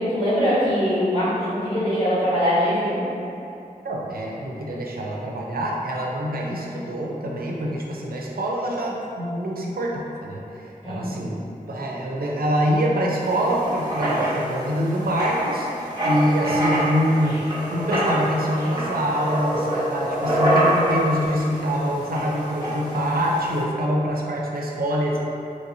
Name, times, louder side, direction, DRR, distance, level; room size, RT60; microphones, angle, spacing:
voice 1, 0.0-3.0 10.8-11.3, equal, 40° left, -11 dB, 1.4 m, -22 dB
voice 2, 3.8-11.3 11.7-17.4 17.7-25.2, equal, 80° right, -2 dB, 0.4 m, -25 dB
Writing, 13.2-23.6, right 1 dB, 25° right, 0.9 m, -26 dB
3.2 x 2.7 x 2.6 m, 2.8 s
wide cardioid pair, 55°, 15 cm